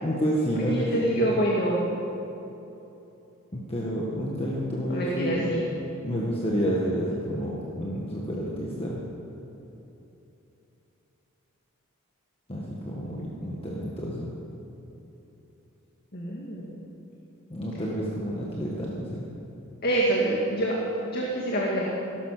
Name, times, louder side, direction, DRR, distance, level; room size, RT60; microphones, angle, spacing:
voice 1, 0.0-0.9 3.5-5.5 6.0-9.0 12.5-14.3 17.5-19.2, equal, 25° left, -4 dB, 1.6 m, -29 dB
voice 2, 0.7-1.9 4.9-5.6 16.1-16.7 19.8-20.8 21.1-21.9, right 1 dB, 45° left, -3 dB, 2.0 m, -26 dB
17.0 x 11.5 x 6.6 m, 3.0 s
head